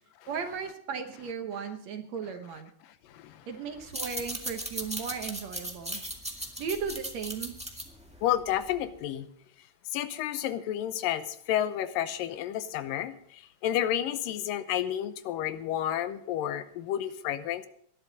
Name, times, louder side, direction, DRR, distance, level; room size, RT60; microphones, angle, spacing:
voice 1, 0.3-2.7 3.5-6.0 6.6-7.6, right 6 dB, 60° right, 6 dB, 2.1 m, -36 dB
voice 2, 3.1-3.4 8.2-9.3 9.9-17.7, left 11 dB, 85° left, 11 dB, 2.6 m, -31 dB
sound 1, 3.8-9.0, right 1 dB, 10° right, 0.4 m, -38 dB
19.5 x 12.0 x 4.0 m, 0.64 s
omnidirectional pair, 3.9 m